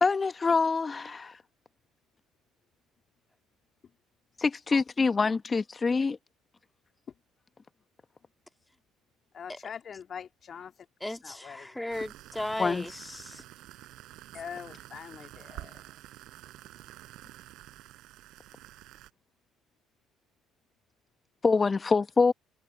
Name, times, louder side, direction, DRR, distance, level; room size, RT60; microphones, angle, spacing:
voice 1, 0.0-1.4 4.4-6.2 12.6-12.9 21.4-22.3, left 4 dB, 30° left, 1.5 m, -25 dB
voice 2, 9.3-10.7 11.2-11.8 14.3-15.8, left 7 dB, 50° left, 2.1 m, -43 dB
voice 3, 11.0-13.4 15.5-15.6, left 1 dB, 10° left, 2.3 m, -36 dB
sound 1, 11.9-19.1, right 16 dB, 70° right, 5.3 m, -49 dB
hypercardioid pair, 55°, 0 cm